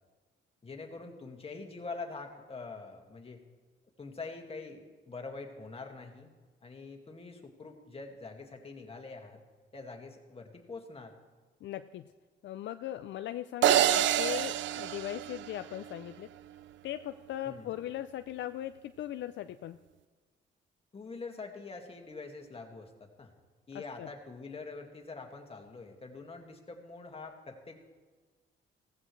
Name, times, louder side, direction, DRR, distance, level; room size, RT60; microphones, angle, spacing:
voice 1, 0.6-3.4 4.0-6.3 6.6-9.4 9.7-11.1 17.4-17.8 20.9-23.3 23.7-28.0, left 3 dB, 30° left, 3 dB, 2.0 m, -45 dB
voice 2, 11.6-12.1 12.4-16.3 16.8-19.8 23.7-24.1, left 12 dB, 70° left, 10 dB, 0.5 m, -39 dB
sound 1, 13.6-16.0, right 12 dB, 70° right, 0.5 m, -27 dB
15.5 x 15.5 x 3.3 m, 1.4 s
cardioid pair, 90°, 20 cm